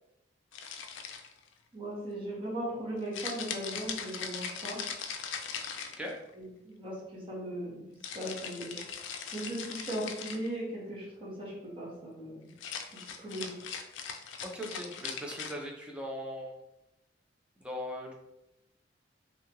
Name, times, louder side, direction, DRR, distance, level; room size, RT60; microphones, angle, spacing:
sound 1, 0.5-1.5 3.1-6.3 8.0-10.5 12.5-15.5, left 6 dB, 85° left, 0.3 m, -40 dB
voice 1, 1.7-4.8 6.3-7.9 8.1-8.8 9.3-12.5 13.0-13.7, right 1 dB, 30° right, -6 dB, 1.1 m, -38 dB
voice 2, 14.4-16.5 17.6-18.1, equal, 5° right, -1 dB, 0.5 m, -39 dB
2.7 x 2.4 x 2.9 m, 0.90 s
head